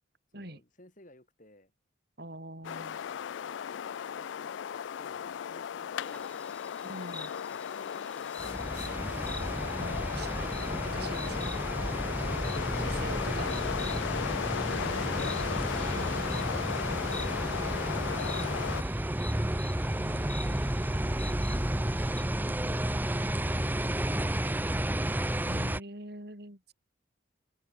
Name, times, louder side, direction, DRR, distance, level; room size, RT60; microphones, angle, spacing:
voice 1, 0.3-1.7 2.6-3.6 4.2-7.0 7.5-9.4 20.0-24.9, left 1 dB, 40° left, 5.5 m, -57 dB
voice 2, 2.2-3.0 6.8-7.3 9.8-11.7 12.8-13.5 14.7-15.5 15.9-16.3 20.0-20.6 25.5-26.7, right 1 dB, 55° right, 4.8 m, -44 dB
sound 1, 2.6-18.8, left 8 dB, 70° left, 0.3 m, -35 dB
Insect, 6.0-22.2, left 2 dB, 5° left, 6.9 m, -49 dB
sound 2, 8.4-25.8, right 1 dB, 10° right, 0.8 m, -32 dB
head